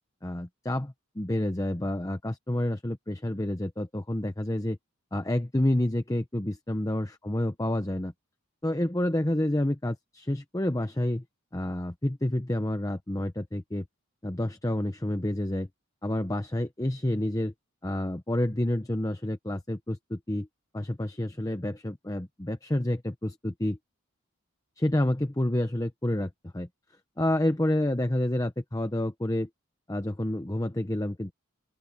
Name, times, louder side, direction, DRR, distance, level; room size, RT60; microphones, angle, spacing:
voice 1, 0.2-4.8 5.1-8.1 8.6-11.2 11.5-13.8 14.2-15.7 16.0-17.5 17.8-20.5 20.7-23.8 24.8-26.7 27.2-29.5 29.9-31.3, left 1 dB, 15° left, 0.8 m, -29 dB
open air
head